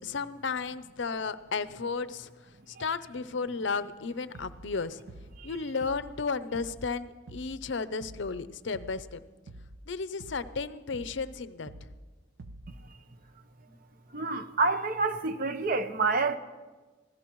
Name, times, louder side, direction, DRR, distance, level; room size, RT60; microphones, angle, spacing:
voice 1, 0.0-2.3 2.7-5.0 5.4-9.2 9.9-11.7, left 4 dB, 65° left, 0.6 m, -33 dB
sound 1, 4.3-4.7 5.1-5.5 5.8-6.2 6.5-6.9 7.3-7.6 8.0-8.4 8.7-9.1 9.5-9.8 10.2-10.6 10.9-11.3 11.7-12.0 12.4-12.8, right 1 dB, 85° right, 0.7 m, -47 dB
voice 2, 14.1-16.4, right 3 dB, 45° right, 0.7 m, -27 dB
25.0 x 16.0 x 3.1 m
head